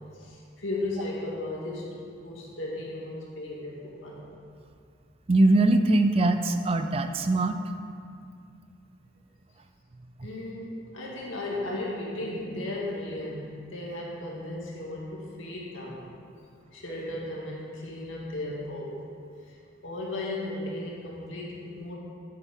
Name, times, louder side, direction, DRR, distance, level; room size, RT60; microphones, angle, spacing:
voice 1, 0.1-4.2 10.2-16.1 16.7-19.1 19.4-19.6 19.8-22.0, left 1 dB, 80° left, -3 dB, 2.0 m, -35 dB
voice 2, 5.3-7.6 10.2-10.3, right 2 dB, 30° right, 7 dB, 0.4 m, -22 dB
10.5 x 8.2 x 3.8 m, 2.3 s
head